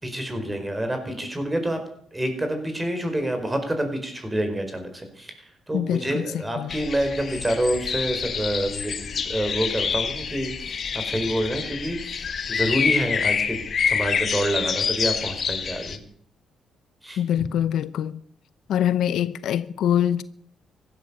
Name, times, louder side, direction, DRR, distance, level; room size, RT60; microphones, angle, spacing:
voice 1, 0.0-1.8 2.1-5.3 5.7-16.0 17.0-17.5, right 1 dB, 15° right, 4.8 m, -27 dB
voice 2, 5.7-6.8 17.2-18.2 18.7-20.2, left 10 dB, 75° left, 0.7 m, -24 dB
sound 1, 6.7-16.0, left 6 dB, 50° left, 1.7 m, -27 dB
15.5 x 12.5 x 7.0 m
cardioid pair, 90°, 0 cm